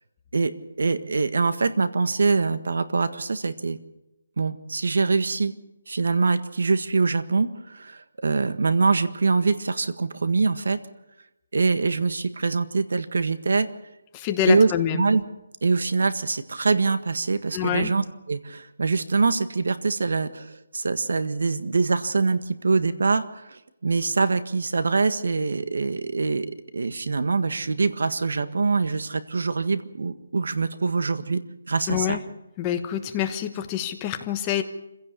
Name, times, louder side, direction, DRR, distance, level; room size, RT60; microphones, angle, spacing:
voice 1, 0.8-3.8 4.4-5.5 5.9-10.8 11.5-13.7 14.5-15.2 15.6-26.5 26.7-31.4 31.7-32.2, right 4 dB, 70° right, 11 dB, 1.6 m, -24 dB
voice 2, 14.1-15.0 17.5-17.9 31.9-32.2 32.6-34.6, left 10 dB, 15° left, 7 dB, 1.1 m, -26 dB
27.0 x 16.5 x 6.9 m, 0.94 s
hypercardioid pair, 170°, 0 cm